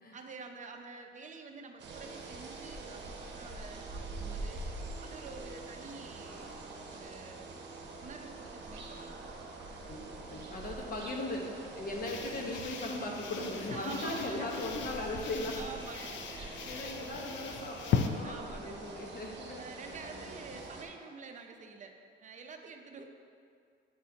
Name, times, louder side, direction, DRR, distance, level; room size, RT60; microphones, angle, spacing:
voice 1, 0.1-4.6 5.0-6.6 6.9-7.5 8.0-9.2 10.6-10.9 13.7-14.6 15.5-17.0 18.2-18.8 19.6-23.1, right 4 dB, 40° right, 4 dB, 0.6 m, -48 dB
sound 1, 1.8-20.9, right 3 dB, 60° right, 0.9 m, -45 dB
voice 2, 9.8-15.6 16.2-19.6 20.0-20.4, left 2 dB, 50° left, -1 dB, 1.1 m, -39 dB
sound 2, 12.0-18.1, left 7 dB, 70° left, 0.4 m, -38 dB
9.3 x 4.1 x 2.8 m, 2.3 s
cardioid pair, 90°, 20 cm